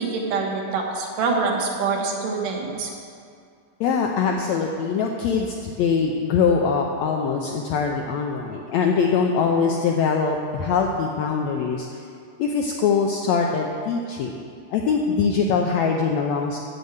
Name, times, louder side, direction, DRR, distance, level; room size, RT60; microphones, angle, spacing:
voice 1, 0.0-2.9, right 4 dB, 75° right, 0 dB, 2.8 m, -25 dB
voice 2, 3.8-11.9 12.4-14.3 14.7-16.6, left 5 dB, 90° left, 1 dB, 1.5 m, -22 dB
7.6 x 7.2 x 8.0 m, 2.4 s
omnidirectional pair, 3.8 m